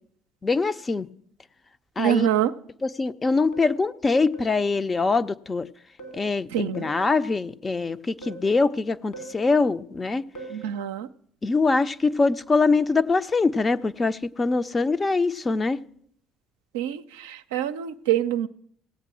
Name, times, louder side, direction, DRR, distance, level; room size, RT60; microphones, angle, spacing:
voice 1, 0.4-1.1 2.0-2.3 2.8-5.7 6.1-10.2 11.4-15.8, left 3 dB, 30° left, 12 dB, 0.5 m, -23 dB
voice 2, 2.0-2.5 6.5-6.9 10.5-11.1 16.7-18.5, right 11 dB, 85° right, 9 dB, 0.4 m, -25 dB
sound 1, 3.5-3.8 4.3-4.6 6.0-6.3 6.7-7.1 8.2-8.5 9.1-9.5 10.4-10.7 12.9-13.2 13.7-13.9, right 3 dB, 65° left, 2.2 m, -42 dB
17.5 x 8.2 x 6.1 m, 0.68 s
hypercardioid pair, 60°, 0 cm